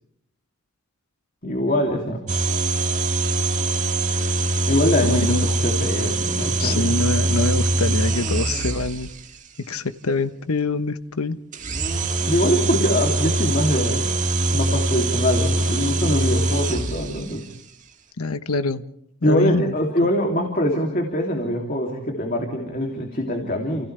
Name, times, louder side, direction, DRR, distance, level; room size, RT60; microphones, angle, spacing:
voice 1, 1.4-2.2 4.7-6.8 12.3-14.1 14.5-17.4 19.2-23.9, equal, 40° left, 2 dB, 2.9 m, -23 dB
sound 1, 2.3-9.2 11.5-17.3, right 2 dB, 35° right, 1.8 m, -23 dB
voice 2, 5.0-5.4 6.6-9.2 9.6-11.4 18.2-18.8 19.2-19.7 20.0-20.1, left 3 dB, 85° left, 11 dB, 1.1 m, -25 dB
30.0 x 29.0 x 3.4 m, 0.77 s
head